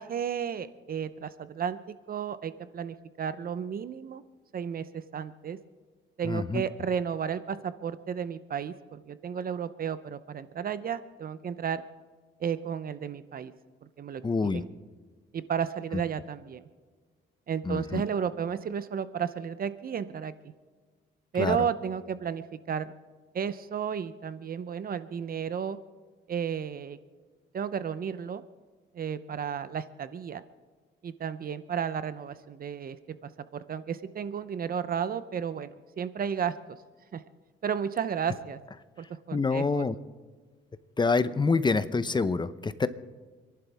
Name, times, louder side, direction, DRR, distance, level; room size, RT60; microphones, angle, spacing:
voice 1, 0.0-4.2 4.5-5.6 6.2-11.8 12.4-13.5 14.0-14.7 15.3-16.6 17.5-20.5 21.3-22.9 23.3-25.8 26.3-27.0 27.5-28.4 28.9-30.4 31.0-33.2 33.5-36.6 37.1-37.2 37.6-38.6 39.0-39.8, right 7 dB, 45° right, 13 dB, 0.7 m, -33 dB
voice 2, 6.2-6.6 14.2-14.6 17.6-18.0 21.4-21.6 39.3-39.9 41.0-42.9, left 4 dB, 20° left, 13 dB, 0.8 m, -26 dB
28.0 x 11.5 x 3.5 m, 1.4 s
cardioid pair, 90°, 20 cm